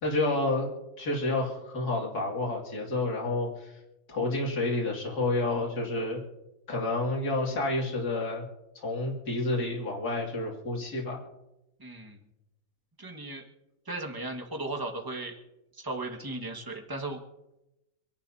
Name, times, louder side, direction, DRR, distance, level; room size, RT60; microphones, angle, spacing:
voice 1, 0.0-0.7 1.0-3.8 4.1-6.2 6.7-8.5 8.7-11.2, left 2 dB, 60° left, -2 dB, 3.1 m, -29 dB
voice 2, 11.8-12.2 13.0-13.4 13.8-15.3 15.7-17.2, right 2 dB, 15° right, 2 dB, 1.7 m, -36 dB
27.0 x 11.0 x 2.8 m, 0.92 s
omnidirectional pair, 1.8 m